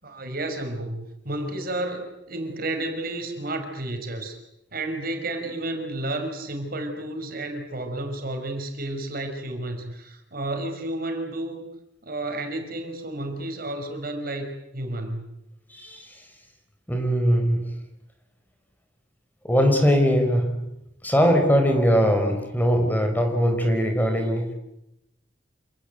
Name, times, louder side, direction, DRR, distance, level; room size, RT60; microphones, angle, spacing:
voice 1, 0.0-4.4 4.7-11.7 12.0-15.3, right 1 dB, 55° right, 5 dB, 5.6 m, -31 dB
voice 2, 15.7-16.2 16.9-17.8 19.4-20.6 21.0-24.5, equal, 10° left, 5 dB, 4.5 m, -21 dB
28.5 x 19.0 x 9.2 m, 0.85 s
head